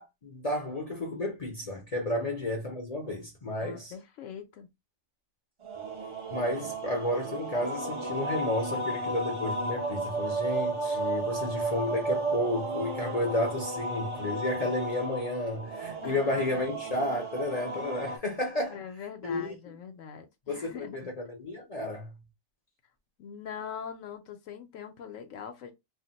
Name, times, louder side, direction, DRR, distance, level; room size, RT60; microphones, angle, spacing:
voice 1, 0.0-3.9 6.3-18.8 19.2-19.5 20.5-22.1, left 1 dB, 40° left, 0.6 m, -32 dB
voice 2, 3.6-4.7 16.0-16.6 18.7-21.1 23.2-25.7, left 7 dB, 75° left, 0.9 m, -42 dB
sound 1, 5.6-18.2, right 2 dB, 40° right, 0.4 m, -33 dB
2.5 x 2.1 x 3.9 m
omnidirectional pair, 1.4 m